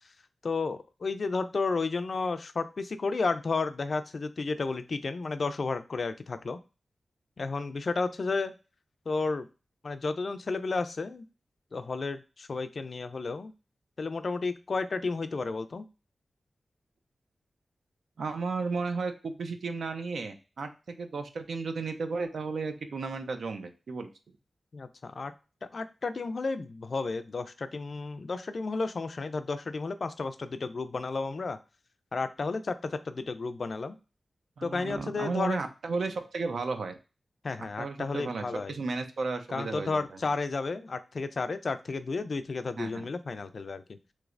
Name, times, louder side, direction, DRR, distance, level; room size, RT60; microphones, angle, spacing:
voice 1, 0.4-6.6 7.4-8.5 9.1-9.5 9.8-11.2 11.7-13.5 14.0-15.8 24.7-25.3 25.7-31.6 32.1-34.0 34.6-35.6 37.4-38.8 39.5-44.0, left 4 dB, 55° left, 11 dB, 0.3 m, -32 dB
voice 2, 18.2-24.1 34.6-36.9 37.8-40.0 42.8-43.1, right 4 dB, 85° right, 7 dB, 0.5 m, -34 dB
3.2 x 3.1 x 2.4 m, 0.32 s
wide cardioid pair, 105°, 0 cm